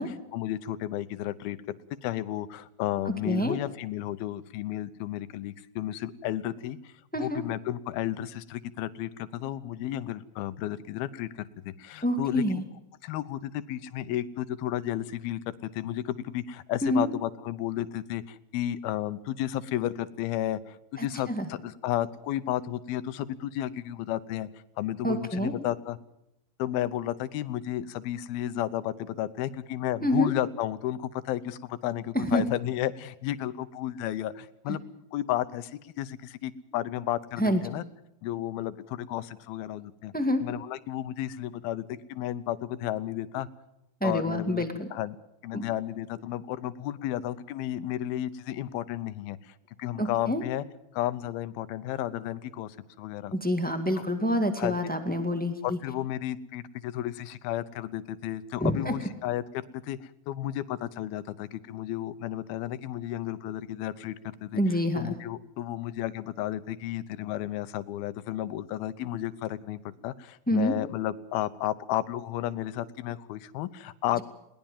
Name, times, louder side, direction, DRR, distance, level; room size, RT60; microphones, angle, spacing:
voice 1, 0.0-1.6 2.0-12.6 13.0-24.5 24.8-26.0 26.6-34.8 35.1-37.8 38.2-40.1 40.4-43.5 44.0-44.6 44.9-45.2 45.4-50.6 50.9-53.3 54.0-54.1 54.6-54.8 55.6-64.6 65.0-74.2, left 13 dB, 90° left, 14 dB, 2.8 m, -33 dB
voice 2, 3.2-3.6 7.1-7.4 12.0-12.6 16.8-17.1 21.0-21.5 25.0-25.5 30.0-30.3 32.1-32.4 37.4-37.6 40.1-40.4 44.0-44.9 45.5-45.6 50.0-50.4 53.3-55.8 58.6-58.9 64.5-65.1 70.5-70.7, equal, 5° left, 7 dB, 0.9 m, -27 dB
21.5 x 19.0 x 7.3 m, 0.82 s
omnidirectional pair, 4.2 m